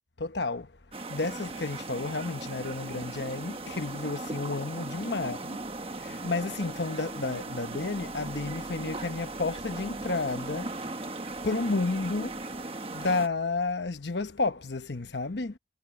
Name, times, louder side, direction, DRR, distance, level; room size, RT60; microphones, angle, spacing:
voice 1, 0.2-0.7 1.1-5.6 6.0-11.0 11.4-12.4 12.9-15.6, left 3 dB, 80° left, 1.1 m, -31 dB
sound 1, 0.9-13.3, right 2 dB, 35° right, 1.2 m, -38 dB
head